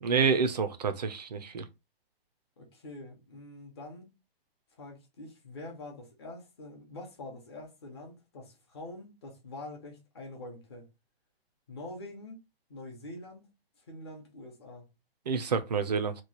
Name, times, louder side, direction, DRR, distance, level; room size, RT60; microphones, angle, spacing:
voice 1, 0.0-1.6 15.3-16.1, right 5 dB, 45° right, 0.5 m, -28 dB
voice 2, 2.6-4.1 4.8-10.9 11.7-12.4 12.7-13.5 13.9-14.8, left 2 dB, 25° left, 0.7 m, -45 dB
3.0 x 2.2 x 4.0 m
hypercardioid pair, 175°, 31 cm